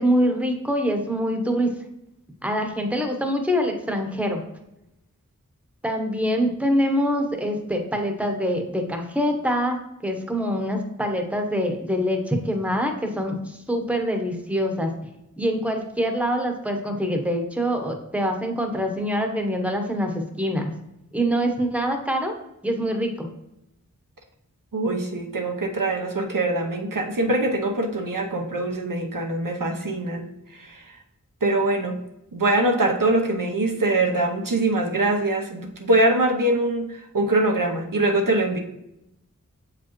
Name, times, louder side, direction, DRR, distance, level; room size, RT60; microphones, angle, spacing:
voice 1, 0.0-1.7 2.4-4.4 5.8-14.9 15.4-20.7 21.1-22.3 22.6-23.3, equal, 5° right, 3 dB, 1.0 m, -25 dB
voice 2, 24.7-30.3 30.6-30.8 31.4-32.0 32.3-38.6, right 2 dB, 80° right, 2 dB, 0.9 m, -23 dB
7.0 x 4.9 x 3.0 m, 0.86 s
wide cardioid pair, 45°, 32 cm